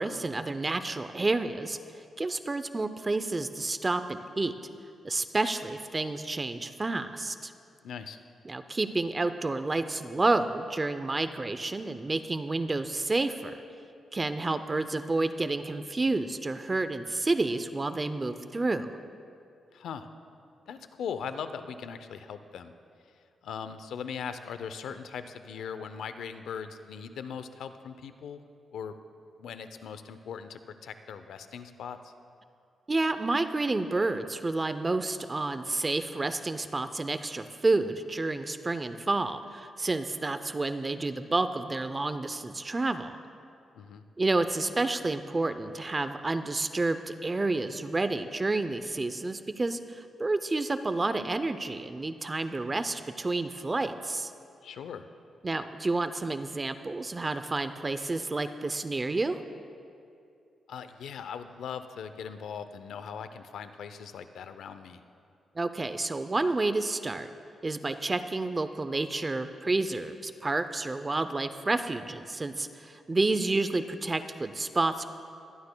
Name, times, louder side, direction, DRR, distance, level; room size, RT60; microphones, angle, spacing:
voice 1, 0.0-1.8 2.2-4.5 5.0-7.5 8.5-13.6 14.1-18.9 32.9-43.2 44.2-54.3 55.4-59.4 65.6-67.3 67.6-75.0, right 2 dB, 25° right, 10 dB, 0.5 m, -30 dB
voice 2, 7.8-8.2 19.7-20.1 20.7-22.7 23.4-28.4 28.7-28.9 29.4-32.1 43.7-44.0 54.6-55.1 60.7-65.0, left 7 dB, 85° left, 10 dB, 0.5 m, -40 dB
23.0 x 11.5 x 2.2 m, 2.4 s
cardioid pair, 100°, 0 cm